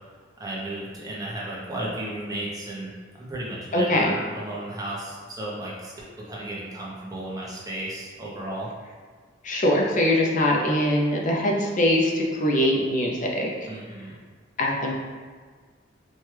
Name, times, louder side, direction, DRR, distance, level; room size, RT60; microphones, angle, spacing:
voice 1, 0.4-2.9 3.2-8.7 13.7-14.2, right 1 dB, 20° right, -5 dB, 0.7 m, -34 dB
voice 2, 3.7-4.1 9.4-13.5 14.6-14.9, left 1 dB, 40° left, -1 dB, 0.5 m, -22 dB
4.4 x 2.3 x 3.2 m, 1.5 s
head